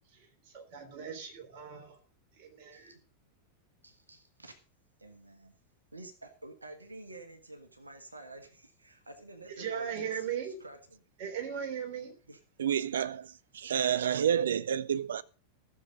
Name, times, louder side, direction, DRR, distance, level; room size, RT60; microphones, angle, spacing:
voice 1, 0.1-2.0 2.4-3.0 9.6-10.6 11.2-12.1, right 8 dB, 45° right, 3.7 m, -38 dB
voice 2, 3.8-4.6 5.0-5.6 5.9-11.0 12.3-12.4, right 2 dB, 80° right, 1.7 m, -49 dB
voice 3, 12.6-15.2, right 9 dB, 65° right, 0.6 m, -29 dB
15.5 x 7.3 x 5.2 m
figure-of-eight pair, 90°, 0 cm